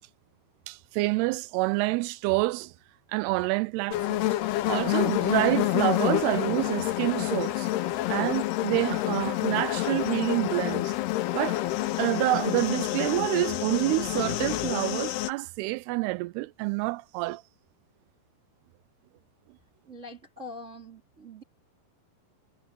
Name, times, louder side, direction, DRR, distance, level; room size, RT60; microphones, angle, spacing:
voice 1, 0.7-2.7 3.1-7.7 8.1-11.0 11.3-11.6 12.0-17.4, right 21 dB, 90° right, 2.6 m, -28 dB
sound 1, 3.9-15.3, left 15 dB, 80° left, 3.0 m, -28 dB
voice 2, 19.9-21.4, left 1 dB, 20° right, 2.8 m, -43 dB
omnidirectional pair, 4.5 m